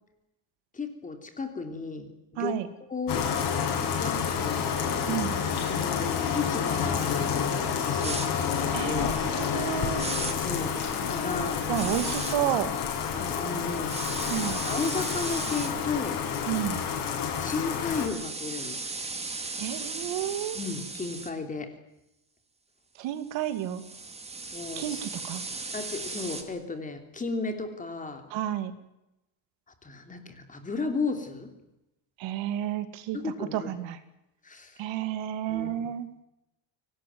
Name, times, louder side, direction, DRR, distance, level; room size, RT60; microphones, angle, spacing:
voice 1, 0.7-2.6 2.9-3.3 3.7-4.8 5.6-9.1 10.3-12.0 13.1-14.0 14.6-16.2 17.4-18.8 20.5-21.7 24.5-25.0 25.7-28.3 29.8-31.5 33.1-33.7 34.4-34.9 35.5-35.9, left 4 dB, 15° left, 7 dB, 3.1 m, -34 dB
voice 2, 2.4-2.7 5.1-5.4 8.7-10.1 11.7-12.7 14.3-14.6 16.5-16.8 19.6-20.6 23.0-23.8 24.8-25.4 28.3-28.7 32.2-34.0 34.8-36.1, right 12 dB, 70° right, 11 dB, 2.6 m, -31 dB
Bathtub (filling or washing), 3.1-18.1, left 7 dB, 55° left, 7.3 m, -29 dB
sound 1, 8.0-8.3 10.0-10.3 11.7-12.4 13.9-15.7 17.7-21.3 23.4-26.4, right 3 dB, 15° right, 2.6 m, -36 dB
23.5 x 19.0 x 9.6 m, 0.89 s
cardioid pair, 170°, 46 cm